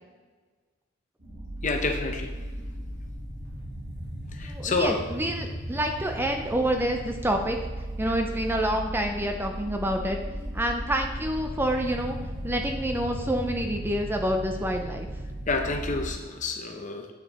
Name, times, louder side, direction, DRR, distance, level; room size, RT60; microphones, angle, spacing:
sound 1, 1.2-16.1, right 1 dB, 55° right, 2.8 m, -36 dB
voice 1, 1.6-2.3 4.4-5.0 15.5-17.1, left 3 dB, 40° left, 4 dB, 0.9 m, -28 dB
voice 2, 4.4-7.6 8.0-10.2 10.5-12.2 12.4-15.1, right 1 dB, 10° right, 4 dB, 0.6 m, -28 dB
8.5 x 6.6 x 3.7 m, 1.4 s
head